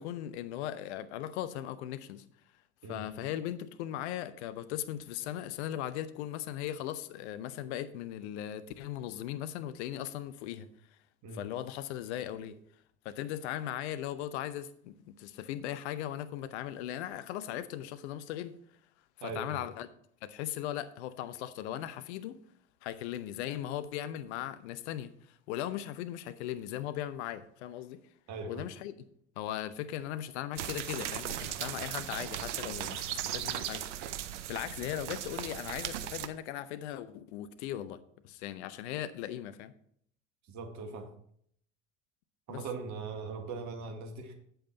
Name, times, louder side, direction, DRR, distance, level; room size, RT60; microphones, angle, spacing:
voice 1, 0.0-2.2 2.9-10.7 11.3-12.6 13.0-18.6 19.2-19.9 20.2-22.4 22.8-25.1 25.5-28.0 28.5-28.9 29.4-33.8 34.5-39.7 42.5-42.6, left 12 dB, 65° left, 13 dB, 0.7 m, -38 dB
voice 2, 2.8-3.1 5.3-5.4 11.2-11.5 19.2-19.6 28.3-28.6 40.5-41.1 42.5-44.3, right 4 dB, 50° right, 5 dB, 1.8 m, -40 dB
sound 1, 30.6-36.3, right 11 dB, 75° right, 0.7 m, -37 dB
8.8 x 7.9 x 4.0 m, 0.65 s
figure-of-eight pair, 60°, 36 cm